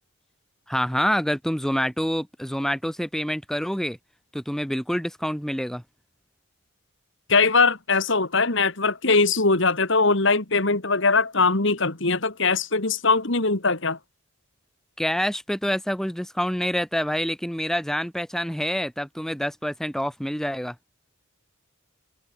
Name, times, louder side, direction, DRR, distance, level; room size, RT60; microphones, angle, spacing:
voice 1, 0.7-4.0 4.3-5.8 15.0-20.8, equal, ahead, 2.0 m, -27 dB
voice 2, 7.3-14.0, left 4 dB, 60° left, 2.2 m, -21 dB
head